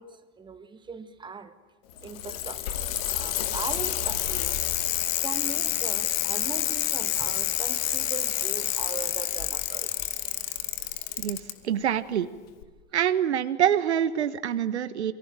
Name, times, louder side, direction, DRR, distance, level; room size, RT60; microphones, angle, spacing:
voice 1, 0.0-1.5 2.0-2.9 3.1-4.6 5.2-10.2, right 5 dB, 15° right, 10 dB, 1.9 m, -40 dB
Bicycle, 1.9-11.5 12.6-12.7, left 12 dB, 55° left, 2.6 m, -28 dB
voice 2, 11.6-12.3 12.9-15.1, right 9 dB, 65° right, 13 dB, 1.4 m, -25 dB
27.5 x 24.0 x 9.2 m, 1.3 s
figure-of-eight pair, 95°, 36 cm